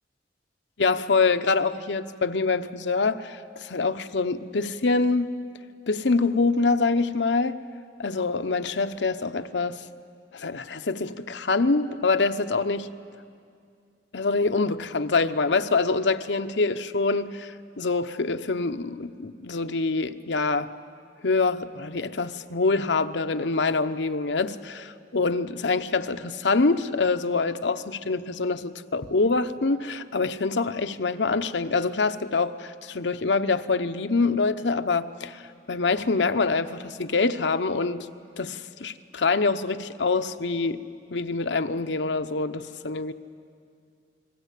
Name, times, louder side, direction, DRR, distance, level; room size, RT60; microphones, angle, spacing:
voice 1, 0.8-5.3 5.9-7.6 8.0-9.8 10.3-12.9 14.1-20.7 21.2-35.4 35.7-38.1 38.4-40.8 41.1-43.1, left 3 dB, 85° left, 9 dB, 0.9 m, -25 dB
29.0 x 20.5 x 8.4 m, 2.3 s
head